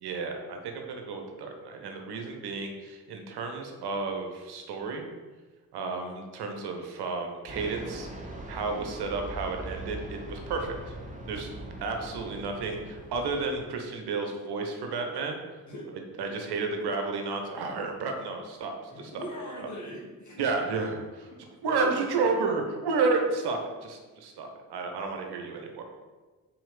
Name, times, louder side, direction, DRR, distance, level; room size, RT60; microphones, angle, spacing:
voice 1, 0.0-5.1 5.7-8.1 8.5-10.9 11.3-15.4 16.2-18.7 19.1-19.2 20.4-21.3 21.6-25.8, right 4 dB, 55° right, 3 dB, 1.2 m, -31 dB
Fixed-wing aircraft airplane, 7.5-13.4, right 1 dB, 15° right, 1.6 m, -41 dB
voice 2, 15.7-16.0 18.9-20.4 21.3-21.4, equal, 35° left, -2 dB, 2.3 m, -41 dB
6.0 x 4.9 x 5.1 m, 1.3 s
figure-of-eight pair, 40°, 47 cm